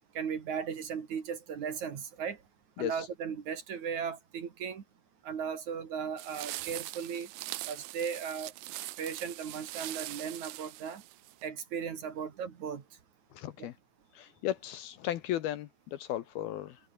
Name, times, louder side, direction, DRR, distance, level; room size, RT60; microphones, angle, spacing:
voice 1, 0.1-2.4 2.8-4.8 5.2-7.3 7.7-8.5 9.0-11.0 11.4-12.8 13.6-13.7, right 7 dB, 45° right, 3.1 m, -37 dB
sound 1, 6.2-11.5, right 17 dB, 85° right, 2.0 m, -42 dB
voice 2, 13.3-13.7 14.2-16.8, left 12 dB, 70° left, 2.6 m, -35 dB
omnidirectional pair, 5.3 m